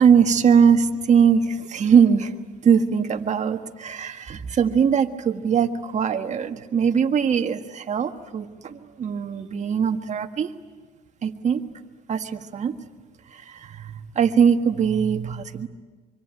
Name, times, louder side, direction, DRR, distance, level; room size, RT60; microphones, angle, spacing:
voice 1, 0.0-2.3 2.6-10.5 11.2-11.6 12.1-12.8 13.3-15.7, right 7 dB, 45° right, 7 dB, 1.6 m, -21 dB
25.0 x 24.5 x 9.0 m, 1.4 s
cardioid pair, 110°, 17 cm